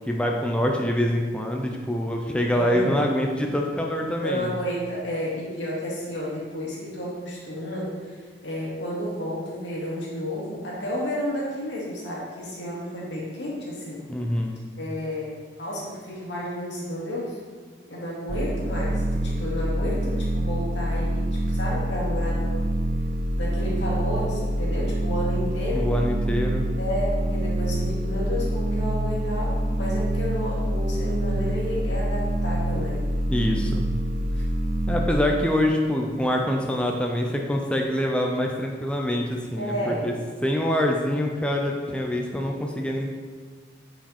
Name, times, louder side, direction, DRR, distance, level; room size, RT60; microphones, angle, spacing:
voice 1, 0.1-4.5 14.1-14.6 25.7-26.7 33.3-33.8 34.9-40.1 40.4-43.1, left 1 dB, 5° left, 0 dB, 0.5 m, -25 dB
voice 2, 2.5-3.1 4.2-14.0 14.8-17.4 17.9-22.7 23.4-25.9 26.8-33.0 34.3-34.4 39.6-40.1, equal, 80° left, -5 dB, 2.3 m, -31 dB
sound 1, 18.3-35.1, right 1 dB, 50° right, 0.5 m, -26 dB
8.9 x 5.1 x 4.3 m, 1.5 s
head